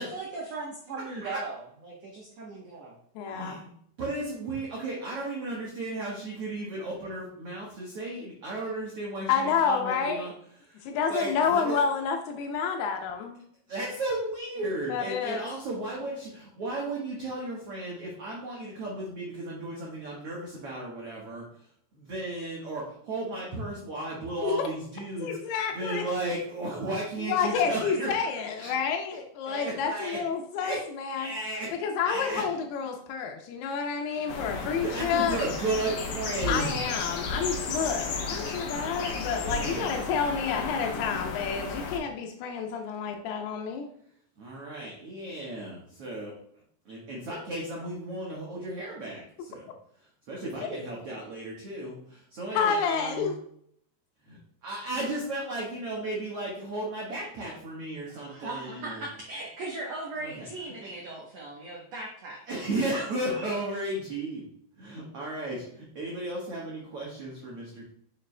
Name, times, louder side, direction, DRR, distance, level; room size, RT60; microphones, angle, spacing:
voice 1, 0.1-2.9 58.1-62.4, right 3 dB, 85° right, -2 dB, 1.4 m, -38 dB
voice 2, 1.0-1.4 3.2-3.7 4.0-10.3 10.6-11.8 13.7-21.6 21.9-28.7 29.4-30.2 30.6-30.8 31.2-31.7 32.0-32.4 34.1-36.8 39.4-39.9 44.4-46.4 46.8-49.7 50.3-53.3 54.2-59.1 60.2-60.5 62.5-64.5 64.7-67.9, right 2 dB, 65° right, -4 dB, 1.5 m, -35 dB
voice 3, 3.2-3.6 9.3-10.3 10.8-13.4 14.9-15.5 24.4-24.5 25.2-26.0 27.3-31.3 31.8-35.4 36.5-43.9 52.5-53.4, left 6 dB, 85° left, 3 dB, 2.7 m, -29 dB
sound 1, 34.3-42.0, left 4 dB, 70° left, 1.8 m, -33 dB
6.8 x 6.5 x 2.2 m, 0.67 s
omnidirectional pair, 4.5 m